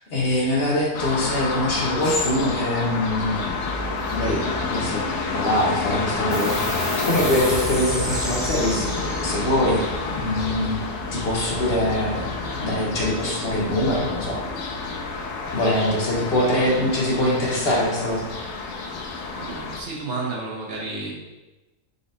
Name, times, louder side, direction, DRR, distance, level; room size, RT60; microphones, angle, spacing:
voice 1, 0.1-3.7 4.1-5.0 5.3-8.9 9.2-9.8 10.1-10.8 11.1-12.3 12.6-14.4 15.5-18.3, left 1 dB, 50° left, -4 dB, 1.1 m, -23 dB
sound 1, 0.9-19.8, left 3 dB, 80° left, 1.0 m, -29 dB
sound 2, 6.3-13.2, right 1 dB, ahead, 0.4 m, -33 dB
voice 2, 16.4-16.9 19.0-21.1, right 3 dB, 50° right, -3 dB, 0.9 m, -33 dB
4.9 x 4.0 x 2.7 m, 1.1 s
omnidirectional pair, 1.4 m